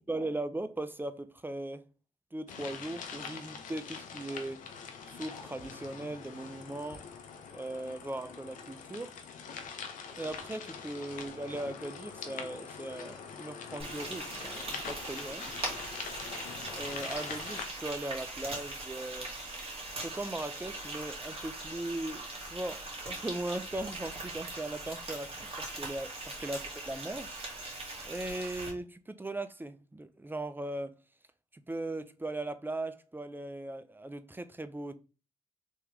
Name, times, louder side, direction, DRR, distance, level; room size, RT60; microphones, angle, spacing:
voice 1, 0.0-1.8 2.3-4.7 5.1-7.0 7.5-9.2 10.2-15.5 16.7-19.4 19.9-27.3 28.0-31.0 31.5-35.0, right 2 dB, 15° right, 0.6 m, -39 dB
sound 1, 2.5-17.7, left 6 dB, 85° left, 0.7 m, -44 dB
Frying (food), 13.8-28.7, right 2 dB, 45° right, 1.8 m, -41 dB
3.6 x 2.9 x 3.2 m
supercardioid pair, 50°, 13 cm